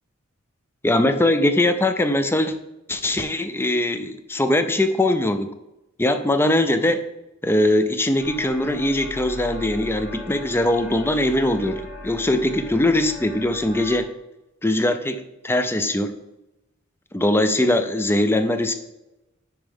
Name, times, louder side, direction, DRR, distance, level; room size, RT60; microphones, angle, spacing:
voice 1, 0.8-2.5 2.9-5.5 6.0-7.0 7.4-14.1 14.6-16.1 17.1-18.7, left 1 dB, 10° left, 9 dB, 0.5 m, -21 dB
sound 1, 8.2-14.0, left 1 dB, 35° left, 1.9 m, -38 dB
10.0 x 4.6 x 3.6 m, 0.94 s
head